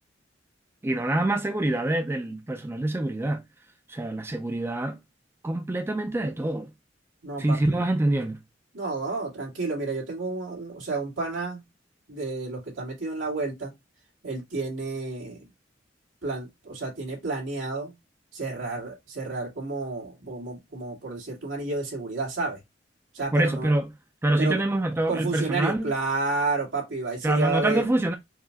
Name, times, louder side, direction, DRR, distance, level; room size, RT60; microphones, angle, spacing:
voice 1, 0.8-3.4 3.9-5.0 5.4-6.7 7.4-8.4 23.3-23.9 24.2-25.9 27.2-28.2, right 1 dB, 15° right, 0.3 m, -25 dB
voice 2, 7.2-7.9 8.7-11.6 12.1-13.7 14.2-15.5 16.2-17.9 18.3-22.6 23.1-23.7 24.4-24.6 25.1-27.8, right 3 dB, 85° right, 2.0 m, -31 dB
4.8 x 2.2 x 2.6 m
head